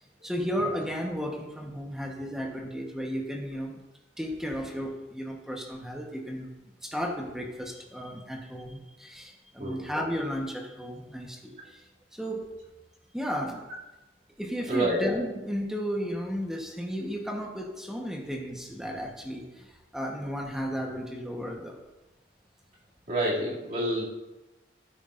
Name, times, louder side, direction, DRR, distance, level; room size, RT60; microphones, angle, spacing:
voice 1, 0.2-3.8 4.2-6.5 6.8-11.9 12.1-12.4 13.1-13.6 14.4-21.8, equal, 5° right, 0 dB, 1.1 m, -34 dB
voice 2, 9.6-9.9 14.7-15.0 23.1-24.0, right 1 dB, 50° right, -6 dB, 2.6 m, -28 dB
13.0 x 9.8 x 2.6 m, 1.0 s
head